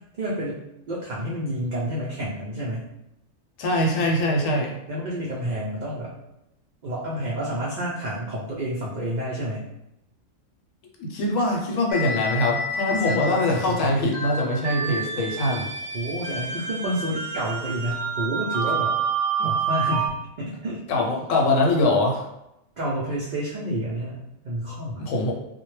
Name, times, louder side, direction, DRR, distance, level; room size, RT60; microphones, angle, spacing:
voice 1, 0.2-0.6 0.9-2.9 4.9-6.1 6.8-9.7 12.9-14.1 15.9-18.9 19.4-20.8 22.8-25.0, right 1 dB, 90° right, -6 dB, 0.4 m, -29 dB
voice 2, 3.6-4.8 11.0-15.7 19.4-19.6 20.9-22.2 25.0-25.3, left 1 dB, 80° left, 0 dB, 0.9 m, -23 dB
sound 1, 11.9-20.1, right 3 dB, 65° right, 0.8 m, -28 dB
2.1 x 2.0 x 3.0 m, 0.85 s
omnidirectional pair, 1.3 m